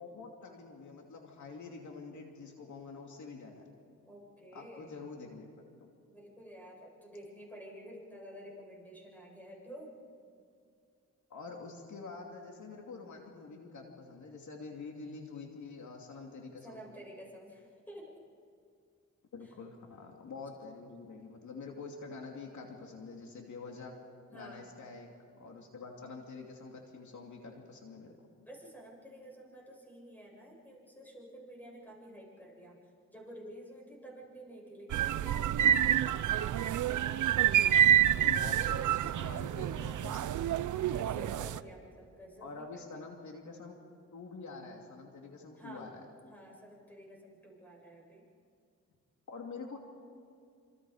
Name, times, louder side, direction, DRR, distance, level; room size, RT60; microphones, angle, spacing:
voice 1, 0.0-3.7 4.5-5.5 5.8-5.9 11.3-16.8 19.3-23.9 24.3-25.1 25.4-28.2 38.2-40.6 42.4-43.8 44.1-46.0 49.3-49.8, left 4 dB, 75° left, 1 dB, 2.7 m, -46 dB
voice 2, 4.0-4.9 6.1-9.9 16.6-18.2 24.3-24.7 28.4-32.8 33.1-37.3 40.9-43.0 45.6-45.9 46.3-48.2, right 1 dB, 5° left, -2 dB, 8.0 m, -50 dB
sound 1, 34.9-41.6, right 10 dB, 85° right, 0.6 m, -28 dB
28.0 x 26.5 x 5.0 m, 2.3 s
cardioid pair, 95°, 30 cm